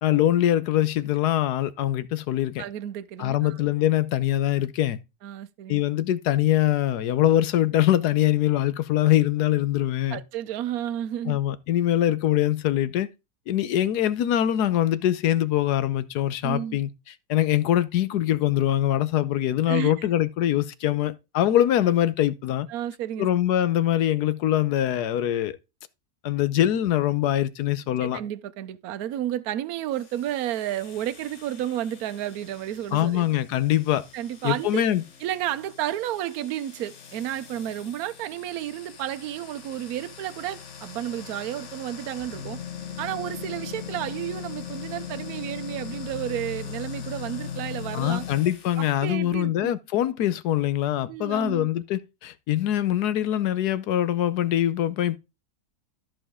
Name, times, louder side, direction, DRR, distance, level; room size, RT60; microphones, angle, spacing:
voice 1, 0.0-2.6 3.2-5.0 5.7-10.2 11.2-13.1 13.5-16.9 17.3-22.7 23.2-25.6 26.2-28.2 32.9-34.0 34.4-35.0 47.9-55.2, left 12 dB, 70° left, 1.2 m, -23 dB
voice 2, 2.6-3.6 5.2-5.8 10.1-11.4 16.4-16.8 19.7-20.1 22.7-23.3 28.0-33.3 34.1-34.8 35.2-42.6 43.0-48.3 48.8-49.7 51.1-51.7, right 12 dB, 65° right, 1.1 m, -32 dB
sound 1, 29.9-49.0, left 7 dB, 45° left, 1.3 m, -40 dB
13.5 x 5.1 x 3.6 m
omnidirectional pair, 1.9 m